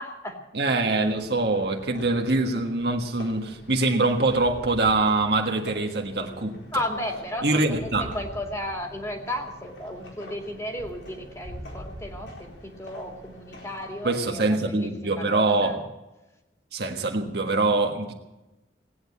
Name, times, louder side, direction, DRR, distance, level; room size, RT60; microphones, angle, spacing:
voice 1, 0.0-0.4 6.7-15.8, left 1 dB, 15° left, 2 dB, 2.4 m, -34 dB
voice 2, 0.5-6.6 7.4-8.1 14.0-15.8 16.7-18.1, right 2 dB, 60° right, 3 dB, 1.6 m, -24 dB
sound 1, 1.0-14.3, equal, 80° left, 4.4 m, -45 dB
19.0 x 9.3 x 8.2 m, 1.0 s
head